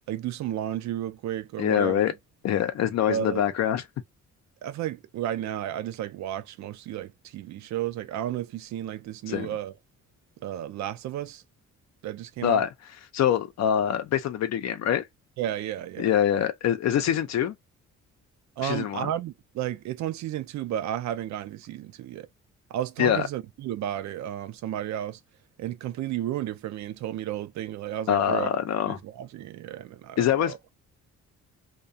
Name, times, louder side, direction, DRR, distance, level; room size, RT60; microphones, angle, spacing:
voice 1, 0.1-2.0 3.1-3.4 4.6-9.7 10.4-11.4 12.0-12.6 15.4-16.1 18.6-22.3 22.7-25.2 25.6-28.5 28.9-30.6, right 11 dB, 65° right, 0.4 m, -33 dB
voice 2, 1.6-2.1 2.4-3.8 9.3-9.5 12.4-12.7 13.1-15.0 16.0-17.6 18.6-19.1 23.0-23.3 28.1-29.0 30.2-30.5, left 10 dB, 60° left, 0.6 m, -24 dB
2.3 x 2.2 x 2.6 m
cardioid pair, 90°, 30 cm